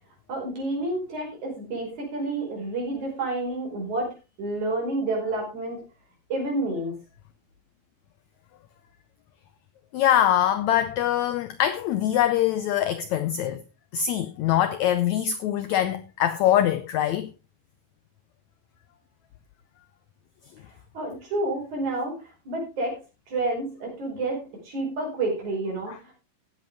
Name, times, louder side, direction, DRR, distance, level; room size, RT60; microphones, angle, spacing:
voice 1, 0.3-4.1 4.4-5.8 6.3-7.0 20.9-23.0 23.3-26.1, right 2 dB, 55° right, 6.4 m, -29 dB
voice 2, 9.9-13.6 13.9-17.3, left 11 dB, 80° left, 1.6 m, -23 dB
17.0 x 7.7 x 3.5 m
omnidirectional pair, 4.1 m